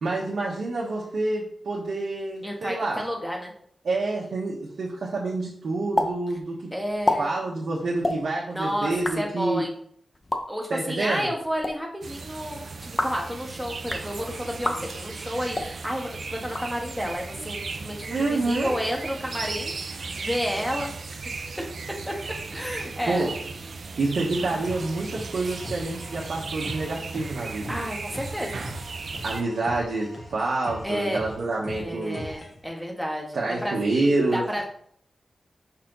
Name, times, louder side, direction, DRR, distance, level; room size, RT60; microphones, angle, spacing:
voice 1, 0.0-3.0 3.8-6.5 7.2-9.6 10.7-11.3 18.1-18.8 23.1-23.3 24.0-27.8 29.2-32.3 33.3-34.4, right 2 dB, 80° right, -5 dB, 1.3 m, -27 dB
voice 2, 2.4-3.5 6.7-7.4 8.5-9.7 10.5-20.9 22.1-22.2 22.5-23.3 27.7-28.6 30.8-31.2 31.7-33.8 34.3-34.6, equal, ahead, 0 dB, 1.4 m, -31 dB
sound 1, 6.0-6.1 6.4-6.5 6.9-7.2 8.0-8.2 8.9-9.2 10.1-10.4 11.4-11.7 12.8-13.2 13.7-14.1 14.6-14.8 15.5-15.7 16.4-17.1, left 2 dB, 25° left, 0.8 m, -28 dB
sound 2, 12.0-29.4, right 4 dB, 60° right, 0.5 m, -36 dB
sound 3, 24.6-32.6, left 1 dB, 45° left, 1.9 m, -41 dB
5.9 x 4.3 x 3.9 m, 0.63 s
wide cardioid pair, 110°, 0 cm